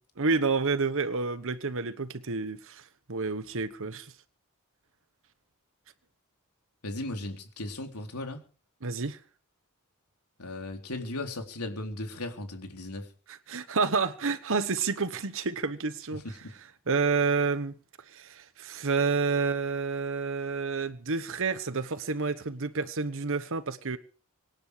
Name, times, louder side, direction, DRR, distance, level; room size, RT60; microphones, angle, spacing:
voice 1, 0.2-2.8 3.1-4.1 8.8-9.2 13.3-16.2 16.9-17.7 18.1-24.0, right 4 dB, 65° right, 1.2 m, -29 dB
voice 2, 6.8-8.4 10.4-13.1 16.2-16.5, left 2 dB, 85° left, 4.0 m, -36 dB
25.5 x 10.0 x 5.1 m
head